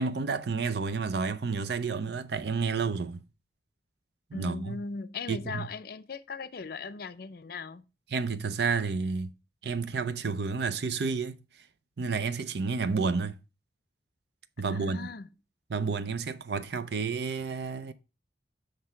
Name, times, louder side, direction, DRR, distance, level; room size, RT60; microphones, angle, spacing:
voice 1, 0.0-3.2 4.3-4.8 5.3-5.7 8.1-9.3 9.6-11.4 12.0-13.4 14.6-15.0 15.7-17.9, right 4 dB, 65° right, 0.5 m, -30 dB
voice 2, 4.3-7.8 14.6-15.3, left 4 dB, 55° left, 0.5 m, -38 dB
7.6 x 3.3 x 5.7 m
head